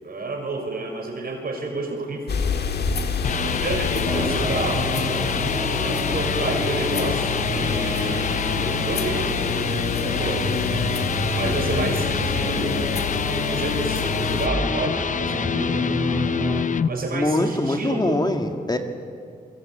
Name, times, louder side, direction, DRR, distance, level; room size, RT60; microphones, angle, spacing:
voice 1, 0.0-2.4 3.4-5.0 5.6-9.4 10.0-10.5 11.4-12.8 13.2-15.8 16.9-18.2, right 3 dB, 65° right, 3 dB, 5.4 m, -30 dB
sound 1, 2.3-14.5, left 5 dB, 80° left, 1.9 m, -28 dB
sound 2, 3.1-16.9, left 6 dB, 50° left, 0.6 m, -27 dB
sound 3, 4.1-16.6, right 1 dB, 20° right, 4.5 m, -30 dB
voice 2, 17.1-18.8, left 1 dB, 25° left, 5 dB, 2.0 m, -23 dB
29.5 x 22.5 x 8.6 m, 2.3 s
wide cardioid pair, 115°, 17 cm